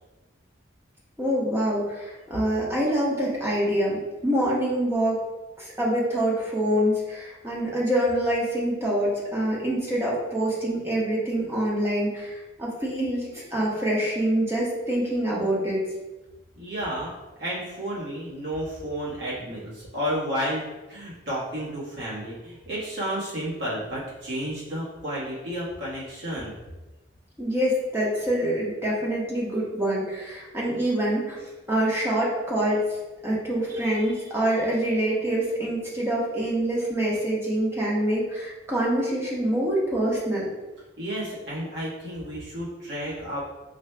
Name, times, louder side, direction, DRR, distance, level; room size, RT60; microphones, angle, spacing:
voice 1, 1.2-5.2 5.6-15.8 27.4-31.4 31.7-32.8 33.2-40.5, right 1 dB, 15° right, -5 dB, 0.8 m, -25 dB
voice 2, 16.6-26.6 33.7-34.1 41.0-43.4, equal, 65° right, -7 dB, 1.5 m, -32 dB
4.8 x 2.3 x 3.3 m, 1.1 s
head